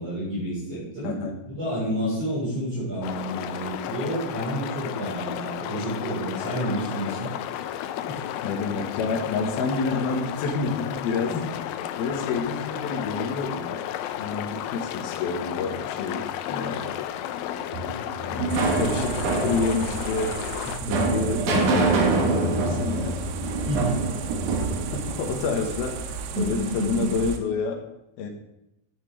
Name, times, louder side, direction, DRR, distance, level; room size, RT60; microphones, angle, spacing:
voice 1, 0.0-1.2 1.5-7.3 8.1-8.2 11.3-11.4 20.8-21.0 23.6-24.0 26.3-27.1, equal, 40° right, -7 dB, 5.3 m, -29 dB
voice 2, 1.0-1.4 8.4-11.3 12.0-13.8 14.2-17.0 18.2-20.3 20.9-23.2 24.9-27.8 28.2-28.3, left 4 dB, 70° left, 1 dB, 3.1 m, -29 dB
sound 1, 3.0-20.8, left 11 dB, 85° left, 2.1 m, -33 dB
sound 2, 17.7-25.8, right 3 dB, 60° right, 2.4 m, -26 dB
sound 3, 18.5-27.4, right 6 dB, 90° right, 3.1 m, -35 dB
12.0 x 9.2 x 3.4 m, 0.85 s
omnidirectional pair, 5.0 m